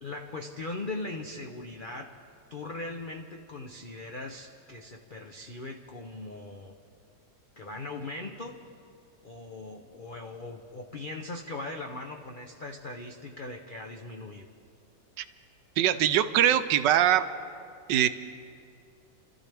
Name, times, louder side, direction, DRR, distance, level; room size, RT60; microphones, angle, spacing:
voice 1, 0.0-2.2 2.5-6.7 7.6-8.6 9.2-14.5, left 2 dB, 65° left, 3 dB, 0.5 m, -39 dB
voice 2, 15.8-17.3 17.9-18.1, right 11 dB, 80° right, 11 dB, 1.2 m, -22 dB
29.5 x 13.5 x 3.4 m, 2.5 s
omnidirectional pair, 2.0 m